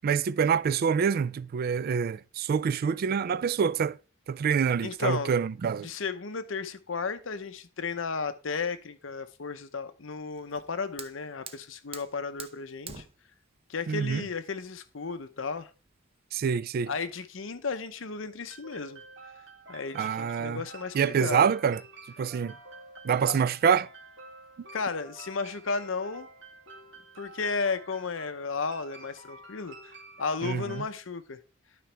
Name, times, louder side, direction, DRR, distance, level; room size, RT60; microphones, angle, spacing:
voice 1, 0.0-4.0 4.3-5.9 13.9-14.3 16.3-16.9 19.9-20.6 20.9-21.8 22.2-22.6 23.0-23.9 30.4-30.8, right 6 dB, 50° right, 0.3 m, -26 dB
voice 2, 4.8-5.3 5.8-13.0 13.7-15.7 16.9-19.0 19.7-21.5 23.3-23.4 24.7-26.3 27.2-31.4, left 4 dB, 70° left, 0.8 m, -34 dB
Fire, 10.4-16.3, right 6 dB, 30° right, 0.7 m, -48 dB
sound 1, 18.5-30.8, right 2 dB, 65° right, 2.5 m, -49 dB
12.0 x 5.1 x 3.4 m
head